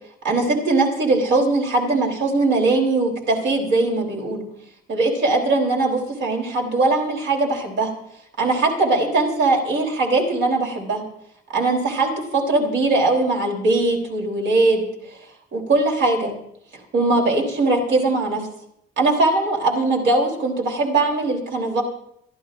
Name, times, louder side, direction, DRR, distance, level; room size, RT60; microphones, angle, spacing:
voice 1, 0.2-4.4 4.9-7.9 8.4-11.0 11.5-15.2 15.5-16.3 16.7-18.5 19.0-21.8, right 2 dB, 65° right, 0 dB, 3.4 m, -20 dB
24.0 x 14.5 x 2.5 m, 0.75 s
cardioid pair, 90°, 20 cm